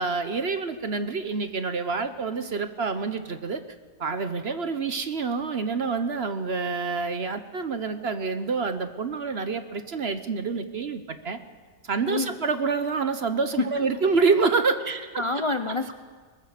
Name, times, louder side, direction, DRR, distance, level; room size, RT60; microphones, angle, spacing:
voice 1, 0.0-3.6 4.0-11.4 11.9-14.8, right 4 dB, 45° right, 10 dB, 1.0 m, -27 dB
voice 2, 12.1-12.4 13.6-13.9 14.8-15.9, left 3 dB, 55° left, 8 dB, 0.3 m, -28 dB
22.0 x 20.5 x 6.6 m, 1.5 s
omnidirectional pair, 1.8 m